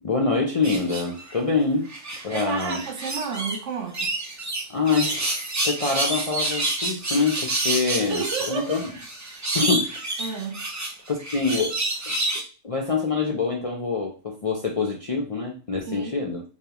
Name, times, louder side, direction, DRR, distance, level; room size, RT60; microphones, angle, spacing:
voice 1, 0.0-1.9 2.2-2.8 4.7-5.4 5.6-8.8 9.5-10.0 11.1-11.8 12.1-12.2 12.6-16.4, left 4 dB, 45° left, 0.4 m, -25 dB
sound 1, 0.6-1.4 1.9-3.6 3.9-12.4, right 2 dB, 30° right, 0.3 m, -28 dB
voice 2, 2.3-4.1 8.0-8.9 10.2-10.7 15.8-16.2, right 5 dB, 70° right, 1.1 m, -31 dB
5.2 x 2.4 x 2.9 m
omnidirectional pair, 1.3 m